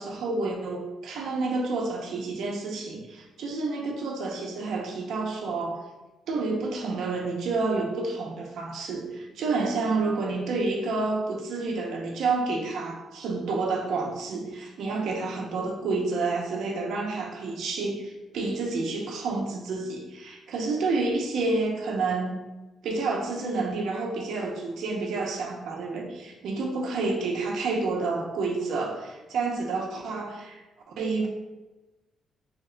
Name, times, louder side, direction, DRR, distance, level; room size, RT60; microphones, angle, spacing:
voice 1, 0.0-5.8 6.3-22.4 22.8-30.6 31.0-31.3, right 3 dB, 70° right, 1 dB, 0.5 m, -29 dB
2.8 x 2.1 x 3.7 m, 1.1 s
cardioid pair, 165°, 0 cm